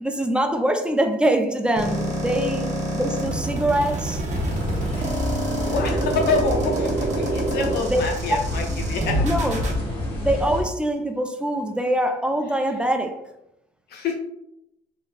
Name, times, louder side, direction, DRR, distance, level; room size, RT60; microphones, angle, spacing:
voice 1, 0.0-4.2 7.8-8.0 9.2-9.7 10.2-13.2, right 1 dB, 5° right, 5 dB, 0.3 m, -24 dB
sound 1, 1.8-9.8, right 1 dB, 45° right, 0.8 m, -27 dB
sound 2, 4.3-10.6, left 1 dB, 35° left, 1.3 m, -28 dB
voice 2, 5.5-9.3 13.9-14.2, left 3 dB, 70° left, 2 dB, 0.6 m, -27 dB
3.2 x 2.8 x 2.4 m, 0.82 s
cardioid pair, 110°, 17 cm